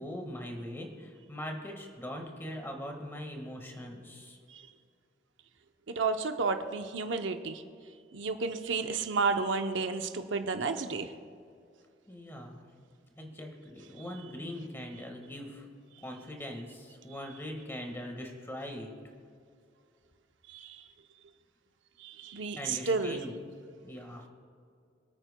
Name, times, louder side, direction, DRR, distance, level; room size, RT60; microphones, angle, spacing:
voice 1, 0.0-4.4 12.1-12.7 13.1-15.7 16.0-18.9 22.6-23.3 23.8-24.3, left 1 dB, 10° left, 2 dB, 1.6 m, -41 dB
voice 2, 5.9-11.1 17.1-17.2 20.5-20.9 22.0-23.2, right 4 dB, 65° right, 7 dB, 0.7 m, -32 dB
24.0 x 9.0 x 2.2 m, 2.4 s
head